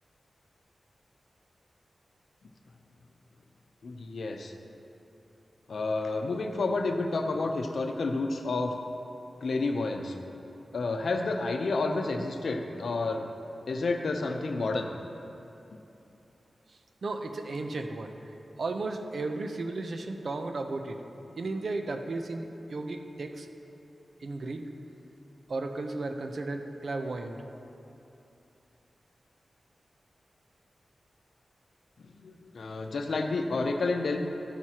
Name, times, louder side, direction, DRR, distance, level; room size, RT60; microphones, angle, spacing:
voice 1, 3.8-4.5 5.7-8.8 9.4-10.1 10.7-13.2 13.7-14.9 32.0-34.2, left 3 dB, 70° left, 4 dB, 0.7 m, -30 dB
voice 2, 17.0-18.1 18.6-21.0 21.4-23.5 24.2-24.7 25.5-27.4, right 3 dB, 60° right, 5 dB, 0.7 m, -34 dB
13.0 x 9.2 x 2.9 m, 2.9 s
wide cardioid pair, 130°, 0 cm